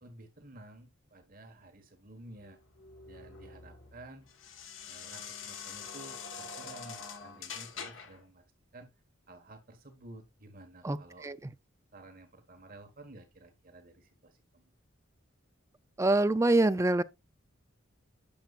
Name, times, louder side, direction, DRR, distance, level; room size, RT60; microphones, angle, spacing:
voice 1, 0.0-2.6 3.1-4.3 4.9-8.4 8.7-8.9 9.3-11.3 11.9-14.7, right 1 dB, 45° right, 1.5 m, -52 dB
sound 1, 2.4-8.2, left 6 dB, 70° left, 1.4 m, -45 dB
voice 2, 16.0-17.0, right 2 dB, 15° right, 0.4 m, -25 dB
10.5 x 6.9 x 2.4 m
head